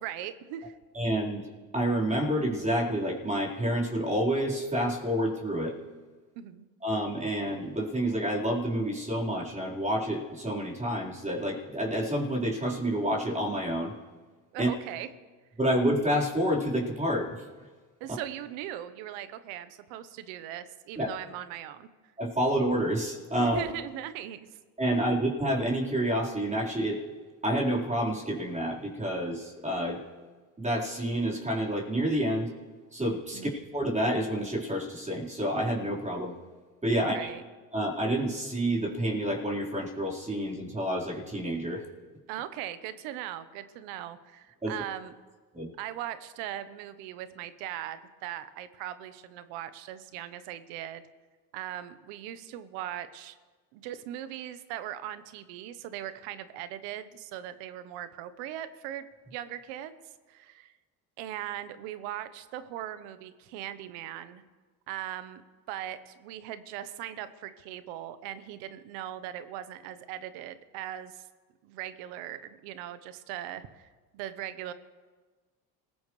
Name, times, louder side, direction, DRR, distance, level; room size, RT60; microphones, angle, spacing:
voice 1, 0.0-0.8 6.4-6.7 14.5-15.1 18.0-21.9 23.4-24.4 33.3-33.6 37.0-37.4 42.3-45.1 45.8-51.0 51.5-53.4 53.7-59.9 60.3-60.7 61.2-64.4 64.9-65.4 65.7-71.2 71.6-74.7, right 12 dB, 80° right, 12 dB, 1.1 m, -39 dB
voice 2, 0.9-1.4 1.7-5.8 6.8-13.9 14.6-14.7 15.6-17.4 21.0-21.1 22.2-23.7 24.8-27.0 27.4-30.0 30.6-32.5 32.9-36.3 36.8-37.3 37.7-41.8 44.6-44.8 45.5-45.7, right 1 dB, 15° right, -4 dB, 4.3 m, -29 dB
26.5 x 16.5 x 3.3 m, 1.4 s
supercardioid pair, 80°, 43 cm